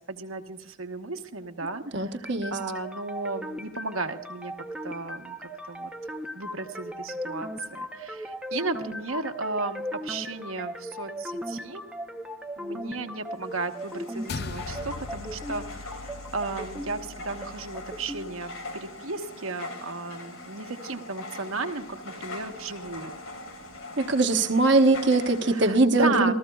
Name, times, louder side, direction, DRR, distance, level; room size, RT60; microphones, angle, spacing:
voice 1, 0.1-4.5 4.8-5.4 5.7-5.9 6.3-11.8 12.6-23.1 25.5-26.3, right 3 dB, 85° right, 5 dB, 1.2 m, -34 dB
voice 2, 1.9-2.6 24.0-26.3, right 2 dB, 55° right, 7 dB, 1.1 m, -22 dB
sound 1, 2.2-18.2, equal, 5° right, 0.8 m, -38 dB
sound 2, 13.3-25.7, left 2 dB, 85° left, 3.4 m, -42 dB
sound 3, 14.3-18.9, left 4 dB, 50° left, 0.5 m, -41 dB
28.0 x 14.5 x 2.3 m, 0.77 s
head